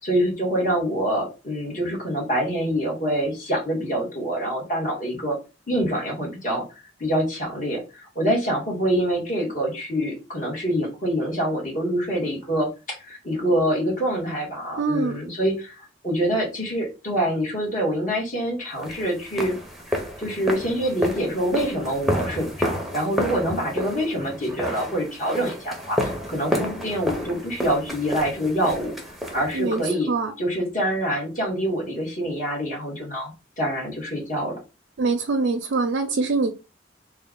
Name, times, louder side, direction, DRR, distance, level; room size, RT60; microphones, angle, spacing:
voice 1, 0.0-5.4 5.7-6.6 7.0-19.6 19.9-28.9 29.3-30.1 30.4-34.5, equal, 45° left, -1 dB, 1.6 m, -26 dB
voice 2, 14.8-15.2 29.5-30.3 35.0-36.5, right 3 dB, 75° right, 5 dB, 0.5 m, -24 dB
sound 1, 18.8-29.9, equal, ahead, 0.7 m, -30 dB
3.4 x 2.3 x 3.6 m, 0.29 s
head